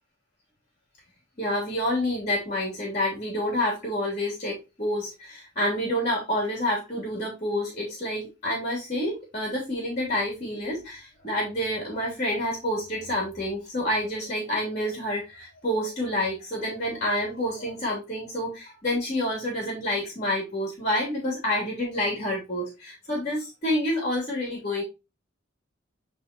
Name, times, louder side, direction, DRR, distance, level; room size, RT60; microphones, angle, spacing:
voice 1, 1.4-24.8, left 1 dB, 35° left, -3 dB, 3.2 m, -28 dB
9.7 x 4.2 x 3.0 m, 0.25 s
head